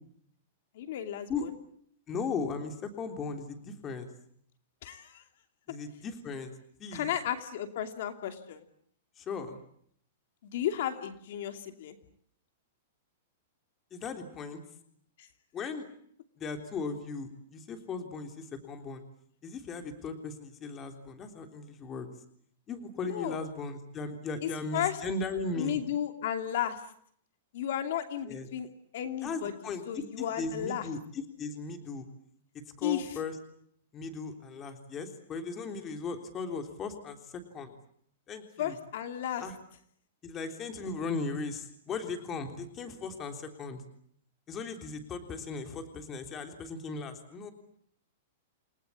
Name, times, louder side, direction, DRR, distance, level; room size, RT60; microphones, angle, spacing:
voice 1, 0.7-1.5 4.8-5.2 6.9-8.6 10.4-12.0 15.2-15.3 23.0-23.4 24.4-25.0 25.6-26.8 27.5-28.7 28.9-29.5 29.9-30.9 32.8-33.2 38.6-39.4, left 10 dB, 60° left, 7 dB, 2.8 m, -34 dB
voice 2, 2.1-4.1 5.7-6.5 6.8-7.1 9.2-9.6 13.9-14.6 15.5-15.9 16.4-19.0 19.4-22.1 22.7-25.8 28.3-28.5 29.2-29.8 30.2-32.1 32.5-33.4 33.9-37.8 38.3-38.8 39.4-39.5 40.2-43.8 44.5-47.5, left 4 dB, 20° left, 6 dB, 3.5 m, -37 dB
29.5 x 20.0 x 8.6 m, 0.65 s
supercardioid pair, 160°, 0 cm